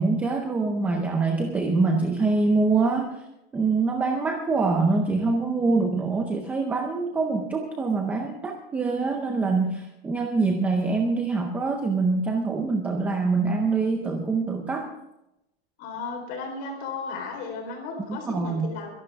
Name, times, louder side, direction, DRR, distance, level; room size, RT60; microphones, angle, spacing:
voice 1, 0.0-3.2 3.5-14.9 18.1-18.7, right 3 dB, 5° right, 3 dB, 0.5 m, -24 dB
voice 2, 15.8-18.9, left 4 dB, 30° left, 2 dB, 4.1 m, -35 dB
23.0 x 12.0 x 3.5 m, 0.89 s
supercardioid pair, 175°, 30 cm